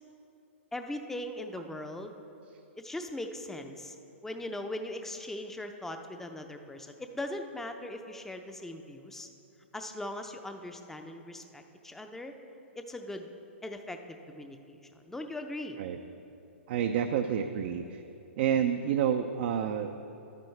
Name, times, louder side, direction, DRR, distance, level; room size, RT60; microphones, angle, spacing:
voice 1, 0.7-2.2 2.8-4.0 4.2-9.3 9.7-12.3 12.8-13.3 13.6-15.8, left 1 dB, 5° left, 6 dB, 0.5 m, -40 dB
voice 2, 16.7-18.0 18.4-20.1, right 8 dB, 50° right, 6 dB, 0.4 m, -29 dB
11.5 x 9.2 x 3.2 m, 2.8 s
hypercardioid pair, 120°, 7 cm